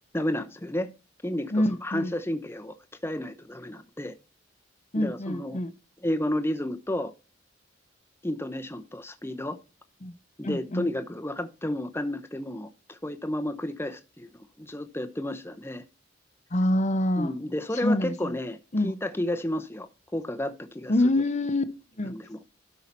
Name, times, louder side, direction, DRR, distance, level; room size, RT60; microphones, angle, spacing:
voice 1, 0.1-0.9 1.2-2.7 3.0-4.1 5.0-5.6 6.0-7.1 8.2-9.6 10.4-14.3 14.6-15.8 17.2-18.6 18.8-20.9 22.1-22.4, left 1 dB, 10° left, 0.8 m, -31 dB
voice 2, 1.5-2.1 4.9-5.7 10.0-10.1 10.4-10.9 16.5-17.3 17.7-18.4 18.7-18.9 20.9-21.7 22.0-22.2, left 1 dB, 40° left, 0.9 m, -26 dB
12.5 x 5.6 x 4.4 m
head